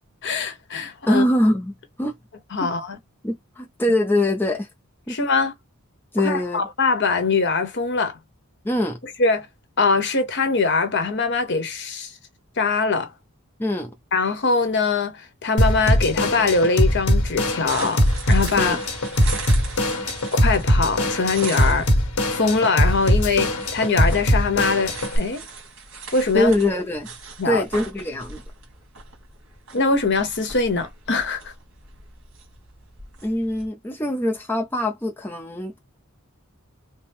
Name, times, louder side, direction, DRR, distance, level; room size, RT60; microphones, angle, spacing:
voice 1, 0.2-1.2 2.5-3.0 5.1-5.5 6.2-8.2 9.2-9.5 9.8-12.1 12.6-13.1 14.1-18.8 20.3-21.9 22.3-25.4 26.1-26.5 27.4-27.6 29.7-31.5, left 4 dB, 55° left, 1.1 m, -22 dB
voice 2, 1.1-2.1 2.6-2.7 3.2-4.7 5.1-5.2 6.1-6.7 8.6-9.0 13.6-13.9 18.6-18.8 26.3-27.1 27.4-28.4 33.2-35.8, left 1 dB, 10° left, 0.6 m, -23 dB
Drum kit / Drum, 15.6-25.2, equal, 85° left, 1.4 m, -21 dB
sound 1, 17.7-33.7, right 4 dB, 65° right, 2.1 m, -40 dB
4.2 x 2.1 x 3.5 m
head